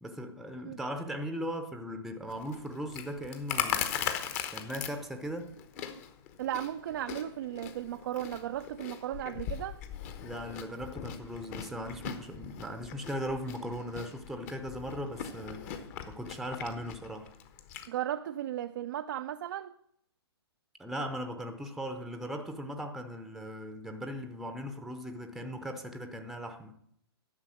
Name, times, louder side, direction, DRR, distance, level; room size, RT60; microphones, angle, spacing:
voice 1, 0.0-5.5 10.2-17.3 20.8-26.8, equal, ahead, 0.7 m, -38 dB
Chewing mastication, 2.3-17.9, left 8 dB, 40° left, 1.1 m, -40 dB
voice 2, 6.4-9.8 17.9-19.7, right 12 dB, 50° right, 0.5 m, -36 dB
11.0 x 6.7 x 6.3 m
figure-of-eight pair, 115°, 14 cm